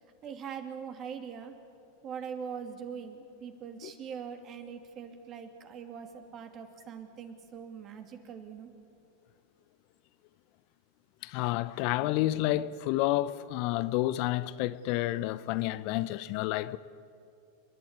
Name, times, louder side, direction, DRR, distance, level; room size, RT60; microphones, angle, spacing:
voice 1, 0.2-1.5 2.0-8.7, right 7 dB, 40° right, 2.6 m, -42 dB
voice 2, 11.2-16.8, left 16 dB, 55° left, 0.7 m, -30 dB
29.5 x 11.5 x 9.6 m
hypercardioid pair, 95°, 0 cm